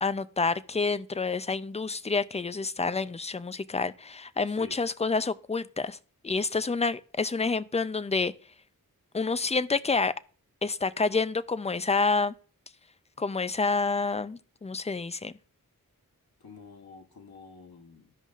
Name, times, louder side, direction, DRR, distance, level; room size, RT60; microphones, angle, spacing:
voice 1, 0.0-6.0 6.2-8.3 9.1-10.1 10.6-12.3 13.2-15.3, left 4 dB, 20° left, 0.4 m, -28 dB
voice 2, 4.5-4.8 16.4-18.1, left 4 dB, 90° left, 1.1 m, -48 dB
14.0 x 5.2 x 2.5 m
wide cardioid pair, 55°, 36 cm